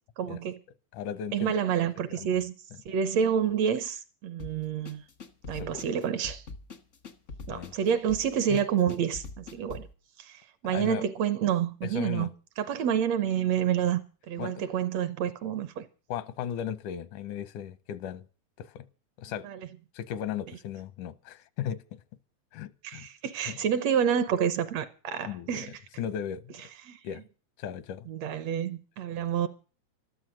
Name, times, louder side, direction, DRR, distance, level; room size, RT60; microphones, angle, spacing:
voice 1, 0.2-0.6 1.3-2.5 2.9-5.0 5.5-6.4 7.5-9.9 10.2-12.3 12.6-14.0 14.3-15.9 19.4-19.6 22.8-25.7 26.9-27.0 28.1-29.5, right 8 dB, 70° right, 1.9 m, -28 dB
voice 2, 0.9-1.5 2.2-2.4 5.5-5.8 7.5-7.7 8.5-8.6 10.6-11.1 11.8-12.3 14.4-14.7 16.1-18.3 18.6-18.9 19.2-19.5 19.9-22.0 22.5-23.1 23.5-23.6 25.2-26.7 27.0-27.2 27.6-28.1, left 9 dB, 85° left, 2.3 m, -36 dB
sound 1, 4.4-9.9, left 3 dB, 60° left, 0.7 m, -44 dB
13.0 x 12.5 x 6.3 m
omnidirectional pair, 3.5 m